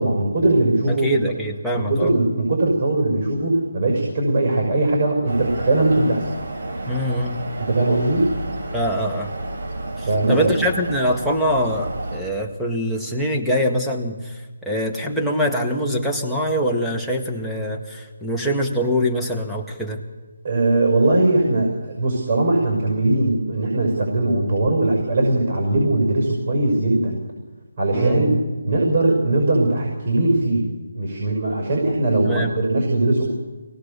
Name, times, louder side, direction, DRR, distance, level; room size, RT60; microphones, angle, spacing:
voice 1, 0.0-1.2 1.7-6.3 7.6-8.3 10.1-10.5 20.4-27.2 27.8-28.3 28.6-30.7 30.9-33.3, right 2 dB, 45° right, -2 dB, 6.0 m, -20 dB
voice 2, 0.9-2.1 6.9-7.5 8.7-9.3 10.0-20.0 27.9-28.4 32.3-32.5, equal, ahead, -2 dB, 1.8 m, -24 dB
sound 1, 5.3-12.2, right 2 dB, 65° right, 7.3 m, -31 dB
23.5 x 19.0 x 7.0 m, 1.2 s
figure-of-eight pair, 155°, 0 cm